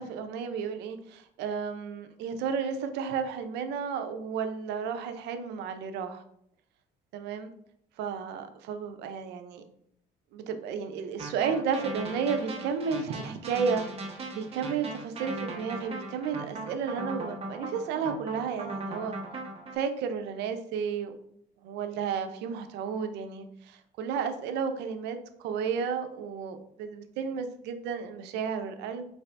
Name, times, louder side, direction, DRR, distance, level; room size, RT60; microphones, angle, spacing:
voice 1, 0.0-6.2 7.1-7.5 8.0-9.6 10.3-19.2 19.7-21.1 21.6-29.1, right 6 dB, 90° right, 7 dB, 0.6 m, -32 dB
sound 1, 11.2-19.8, right 2 dB, 35° right, 1.0 m, -38 dB
4.7 x 2.6 x 3.3 m, 0.71 s
cardioid pair, 110°, 17 cm